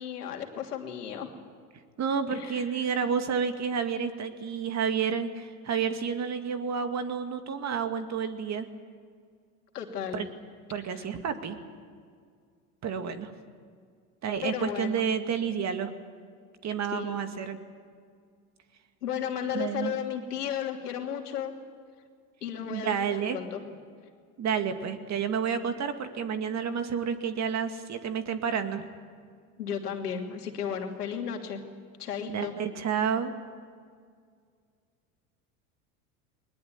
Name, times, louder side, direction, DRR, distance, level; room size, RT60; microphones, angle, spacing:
voice 1, 0.0-1.3 2.3-2.7 9.7-10.2 10.9-11.1 14.4-15.0 16.9-17.2 19.0-21.6 22.4-23.8 29.6-31.6 32.0-32.5, left 8 dB, 85° left, 3 dB, 2.9 m, -34 dB
voice 2, 2.0-8.7 10.1-10.3 10.7-11.6 12.8-13.3 14.2-15.9 16.6-17.6 19.5-19.9 22.7-23.4 24.4-28.8 32.3-33.3, right 7 dB, 35° right, 8 dB, 2.3 m, -30 dB
21.5 x 20.0 x 9.4 m, 2.1 s
hypercardioid pair, 90°, 45 cm